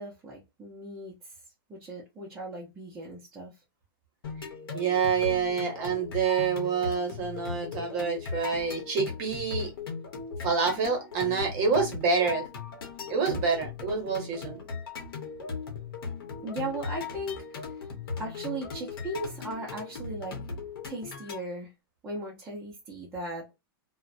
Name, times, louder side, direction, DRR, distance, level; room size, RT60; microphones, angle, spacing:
voice 1, 0.0-1.3 1.7-3.5 16.4-17.9 18.2-20.4 20.8-21.7 22.0-23.4, right 1 dB, 10° right, 0.4 m, -37 dB
sound 1, 4.2-21.4, left 5 dB, 70° left, 0.8 m, -38 dB
voice 2, 4.7-9.7 10.4-12.5 13.1-14.6, right 5 dB, 25° right, 0.8 m, -27 dB
2.3 x 2.0 x 2.5 m
supercardioid pair, 175°, 12 cm